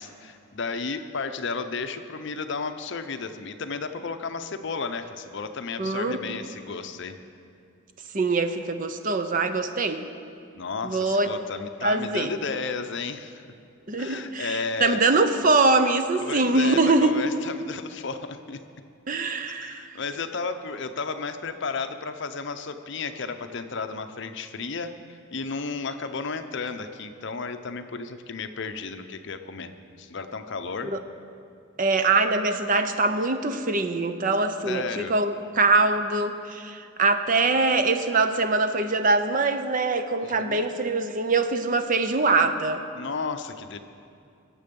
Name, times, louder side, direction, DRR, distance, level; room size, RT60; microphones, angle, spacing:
voice 1, 0.0-7.2 10.6-13.4 14.0-15.0 16.2-18.6 19.6-29.7 30.0-30.9 34.6-35.1 40.2-40.7 42.9-43.8, left 4 dB, 55° left, 9 dB, 0.7 m, -33 dB
voice 2, 5.8-6.2 8.1-10.1 10.8-11.3 11.8-12.3 13.9-17.1 19.1-19.9 30.9-31.0 31.8-42.8, right 3 dB, 40° right, 9 dB, 0.6 m, -23 dB
21.5 x 7.6 x 5.3 m, 2.5 s
head